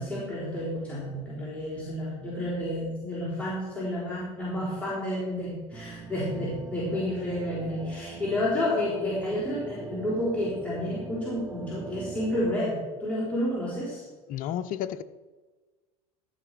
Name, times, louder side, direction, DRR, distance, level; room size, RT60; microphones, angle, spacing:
voice 1, 0.0-14.0, left 1 dB, 5° left, -8 dB, 3.7 m, -30 dB
sound 1, 5.7-12.6, right 4 dB, 15° right, 0.9 m, -41 dB
voice 2, 14.3-15.0, left 10 dB, 50° left, 11 dB, 0.7 m, -31 dB
13.5 x 5.9 x 4.8 m, 1.3 s
hypercardioid pair, 85°, 18 cm